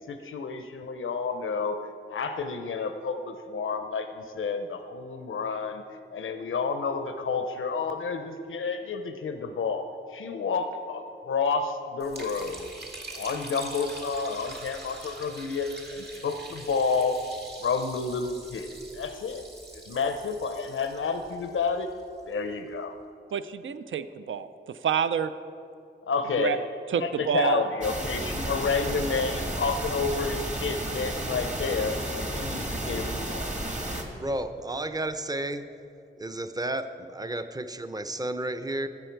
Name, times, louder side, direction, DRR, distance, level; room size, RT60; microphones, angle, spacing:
voice 1, 0.1-1.8 2.1-5.8 6.1-9.9 10.1-12.7 13.1-17.2 17.6-19.4 19.8-21.9 22.3-23.0 26.1-26.6 27.0-32.0 32.3-33.5, left 4 dB, 90° left, 7 dB, 0.6 m, -30 dB
Liquid, 12.0-22.2, right 2 dB, 55° right, 1.6 m, -44 dB
voice 2, 23.3-25.3 26.4-26.6 26.9-27.6, right 8 dB, 75° right, 12 dB, 0.4 m, -28 dB
sound 1, 27.8-34.0, right 1 dB, 35° right, 1.5 m, -32 dB
voice 3, 34.2-35.7 36.2-38.9, right 1 dB, 20° right, 10 dB, 0.6 m, -32 dB
13.0 x 7.9 x 4.5 m, 2.6 s
cardioid pair, 55°, 20 cm